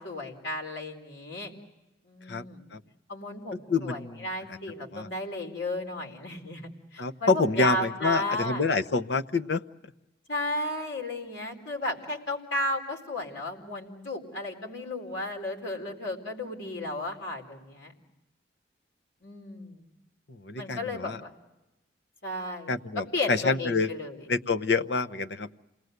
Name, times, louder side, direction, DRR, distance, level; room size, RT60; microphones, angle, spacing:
voice 1, 0.0-1.5 2.0-2.6 3.1-8.6 10.3-17.9 19.2-19.9 20.6-21.3 22.2-22.7 23.1-24.2, left 1 dB, 85° left, 0 dB, 4.3 m, -34 dB
voice 2, 3.7-4.6 4.9-5.1 7.0-9.6 20.3-21.2 22.7-23.9 24.3-25.5, left 4 dB, 70° left, 9 dB, 0.8 m, -27 dB
28.5 x 19.5 x 8.0 m, 0.99 s
head